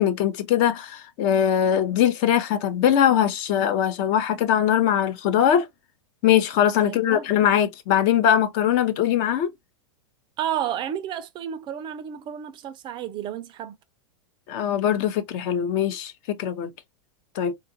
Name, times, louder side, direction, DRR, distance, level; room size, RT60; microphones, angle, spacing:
voice 1, 0.0-5.7 6.2-9.5 14.5-16.7 17.3-17.5, left 9 dB, 45° left, 0.7 m, -21 dB
voice 2, 6.8-7.2 10.4-13.8, right 10 dB, 30° right, 0.4 m, -31 dB
3.7 x 2.4 x 2.6 m
hypercardioid pair, 120°, 17 cm